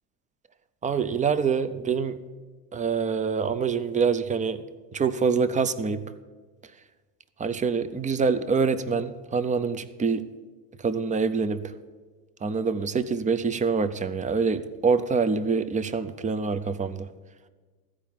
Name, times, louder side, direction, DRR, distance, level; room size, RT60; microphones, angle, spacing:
voice 1, 0.8-2.2 2.7-4.6 4.9-6.1 7.4-10.3 10.8-11.6 12.4-17.1, right 5 dB, 15° right, 12 dB, 0.5 m, -25 dB
14.0 x 4.9 x 8.8 m, 1.4 s
hypercardioid pair, 90°, 49 cm